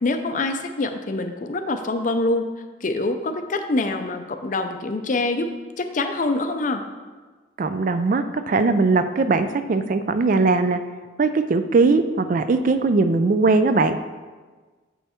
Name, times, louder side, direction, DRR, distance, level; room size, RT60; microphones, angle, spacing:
voice 1, 0.0-2.5 2.8-5.5 5.8-6.8, left 2 dB, 40° left, 7 dB, 0.5 m, -25 dB
voice 2, 7.6-10.8 11.2-14.0, right 3 dB, 40° right, 10 dB, 0.3 m, -20 dB
7.2 x 5.5 x 4.3 m, 1.4 s
head